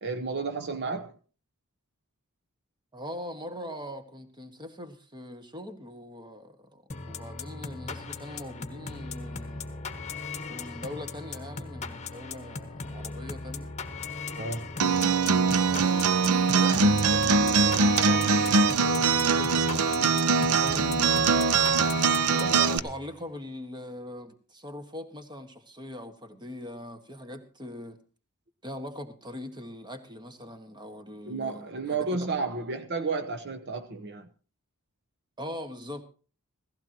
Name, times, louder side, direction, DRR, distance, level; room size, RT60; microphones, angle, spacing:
voice 1, 0.0-1.1 14.4-14.7 31.3-34.3, right 4 dB, 50° right, 0.9 m, -32 dB
voice 2, 2.9-9.9 10.4-13.7 15.3-28.0 28.6-32.3 35.4-36.0, left 1 dB, 20° right, 1.5 m, -42 dB
sound 1, 6.9-23.2, left 4 dB, 30° left, 1.2 m, -38 dB
Acoustic guitar, 14.8-22.8, right 4 dB, 85° right, 0.7 m, -22 dB
16.5 x 15.5 x 2.9 m
head